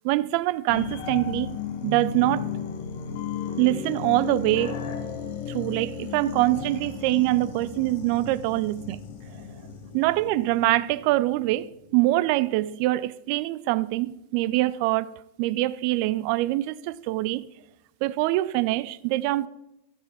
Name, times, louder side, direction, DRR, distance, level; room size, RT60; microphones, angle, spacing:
voice 1, 0.0-1.6 1.8-2.5 3.6-4.8 5.5-9.0 9.9-15.1 15.4-17.5 18.0-19.5, right 17 dB, 45° right, 0.5 m, -24 dB
sound 1, 0.7-11.7 12.1-12.2, left 7 dB, 50° left, 1.3 m, -35 dB
12.5 x 6.4 x 4.8 m
figure-of-eight pair, 90°, 0 cm